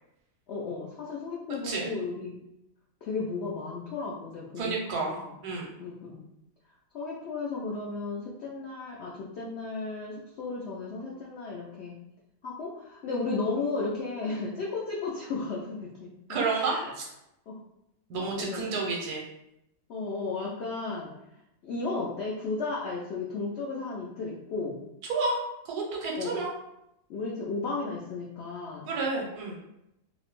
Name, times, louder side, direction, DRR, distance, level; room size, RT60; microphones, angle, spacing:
voice 1, 0.5-2.4 3.0-5.4 5.8-6.2 6.9-11.9 12.4-16.9 17.5-17.6 18.2-18.8 19.9-21.1 21.6-24.8 26.2-26.4 27.1-28.9, left 3 dB, 85° left, -4 dB, 0.5 m, -34 dB
voice 2, 4.6-5.1 5.4-5.6 16.3-17.0 18.1-19.2 25.1-25.4 25.6-26.5 28.9-29.6, right 3 dB, 80° right, -1 dB, 1.1 m, -30 dB
2.7 x 2.0 x 2.9 m, 0.84 s
omnidirectional pair, 1.7 m